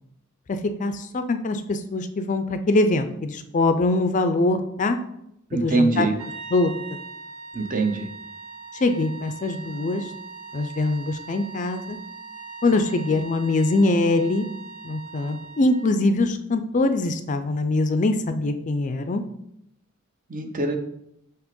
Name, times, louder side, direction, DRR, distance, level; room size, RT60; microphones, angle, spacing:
voice 1, 0.5-5.0 5.5-6.1 6.5-6.7 8.8-10.0 10.5-12.0 12.6-14.5 14.8-19.2, left 2 dB, 35° left, 9 dB, 0.4 m, -23 dB
voice 2, 5.5-6.2 7.5-8.1 20.3-20.8, right 3 dB, 40° right, 5 dB, 0.7 m, -23 dB
sound 1, 6.2-16.1, right 4 dB, 85° right, 1.6 m, -41 dB
6.1 x 2.9 x 5.2 m, 0.77 s
head